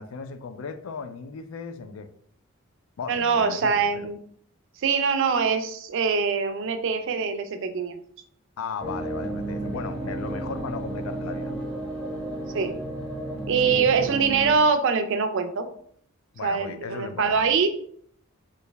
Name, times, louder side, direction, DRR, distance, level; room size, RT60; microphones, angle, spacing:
voice 1, 0.0-2.1 3.0-4.1 8.6-11.5 13.7-14.1 16.3-17.5, left 5 dB, 65° left, 0.3 m, -36 dB
voice 2, 3.1-4.2 4.8-8.0 12.5-12.7 13.5-15.6 16.4-17.7, right 5 dB, 60° right, 0.4 m, -23 dB
sound 1, 8.8-14.5, right 1 dB, 5° left, 0.7 m, -32 dB
3.2 x 2.7 x 3.3 m
head